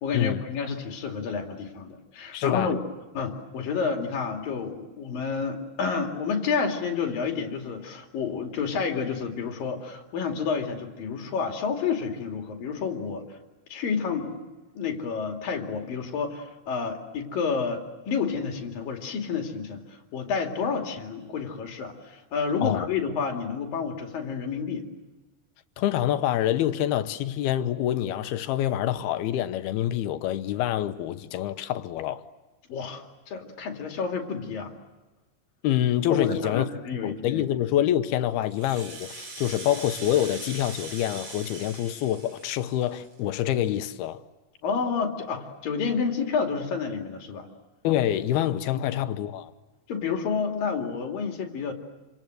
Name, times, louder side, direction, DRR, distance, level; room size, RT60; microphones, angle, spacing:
voice 1, 0.0-2.8 3.1-13.3 13.7-14.4 14.8-24.9 32.7-34.7 36.1-37.4 44.6-47.5 48.7-49.2 49.9-51.7, left 5 dB, 65° left, 4.2 m, -30 dB
voice 2, 2.3-2.7 22.6-22.9 25.8-32.2 35.6-36.7 37.0-44.2 47.8-49.5, left 12 dB, 80° left, 2.9 m, -26 dB
Rattle (instrument), 38.4-43.2, right 3 dB, 45° right, 5.2 m, -41 dB
27.5 x 27.0 x 7.9 m
omnidirectional pair, 4.4 m